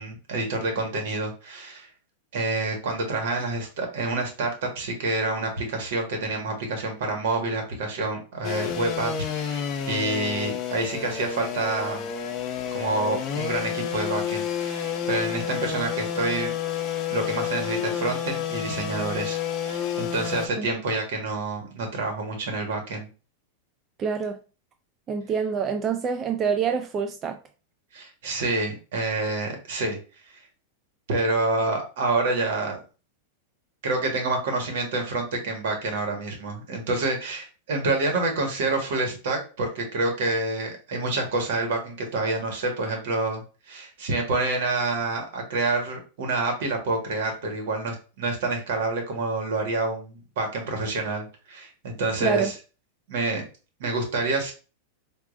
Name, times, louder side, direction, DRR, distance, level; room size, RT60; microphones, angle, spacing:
voice 1, 0.0-1.9 2.3-12.1 12.7-16.5 17.1-23.1 27.9-30.0 31.1-32.8 33.8-52.5 53.1-53.4 53.8-54.5, right 2 dB, 70° right, 1.4 m, -28 dB
sound 1, 8.4-20.5, left 8 dB, 40° left, 0.6 m, -30 dB
voice 2, 24.0-24.4 25.1-27.4 52.2-52.5, right 6 dB, 30° right, 0.3 m, -26 dB
4.5 x 2.4 x 2.5 m
hypercardioid pair, 120°, 0 cm